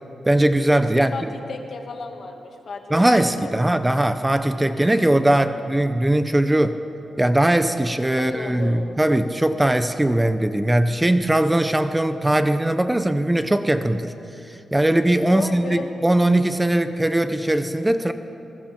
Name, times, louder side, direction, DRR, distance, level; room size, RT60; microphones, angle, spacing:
voice 1, 0.2-1.1 2.9-6.8 7.2-14.1 14.4-18.1, right 1 dB, 10° right, 10 dB, 0.8 m, -20 dB
voice 2, 1.0-2.8 3.4-3.7 8.2-8.9 15.3-15.9, left 4 dB, 60° left, 3 dB, 2.3 m, -34 dB
28.0 x 20.5 x 4.5 m, 2.9 s
cardioid pair, 90°, 0 cm